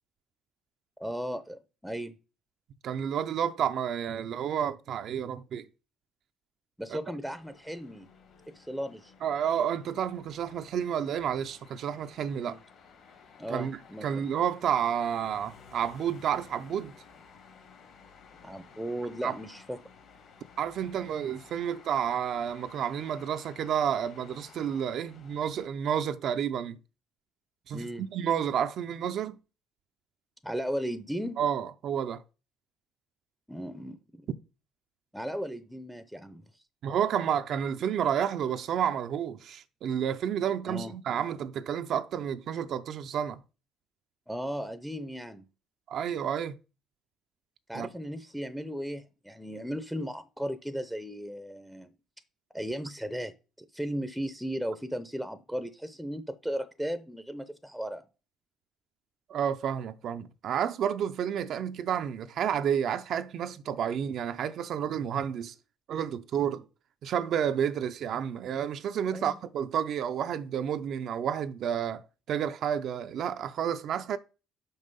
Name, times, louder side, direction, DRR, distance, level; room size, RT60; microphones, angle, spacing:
voice 1, 1.0-2.1 6.8-8.1 8.5-9.1 12.4-12.6 13.4-14.2 18.4-19.8 27.7-28.1 30.4-31.4 33.5-34.0 35.1-36.4 40.7-40.9 44.3-45.5 47.7-51.9 52.5-53.3 53.7-58.0 69.1-69.4, equal, ahead, 0.6 m, -36 dB
voice 2, 2.8-5.7 6.9-7.0 9.2-12.6 13.5-16.9 19.2-19.4 20.6-26.8 27.7-29.4 31.4-32.2 36.8-43.4 45.9-46.6 47.7-47.9 59.3-65.5 65.9-66.7 67.0-74.2, right 8 dB, 60° right, 0.5 m, -30 dB
sound 1, 7.3-25.7, left 5 dB, 60° left, 2.3 m, -55 dB
5.9 x 5.5 x 5.4 m
supercardioid pair, 90°, 0 cm